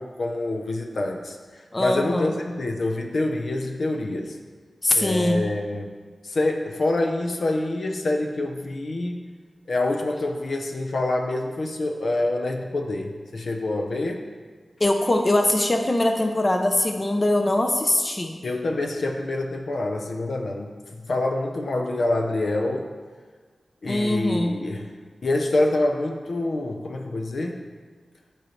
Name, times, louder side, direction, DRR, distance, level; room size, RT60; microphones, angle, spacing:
voice 1, 0.0-4.4 4.9-5.9 6.2-9.3 9.7-14.2 18.4-20.7 21.0-22.9 23.8-24.9 25.2-27.6, left 2 dB, 70° left, 2 dB, 0.8 m, -26 dB
voice 2, 1.7-2.3 4.8-5.5 14.8-18.4 23.9-24.6, left 1 dB, 30° left, 4 dB, 0.6 m, -22 dB
13.0 x 4.4 x 3.3 m, 1.5 s
cardioid pair, 65°, 0 cm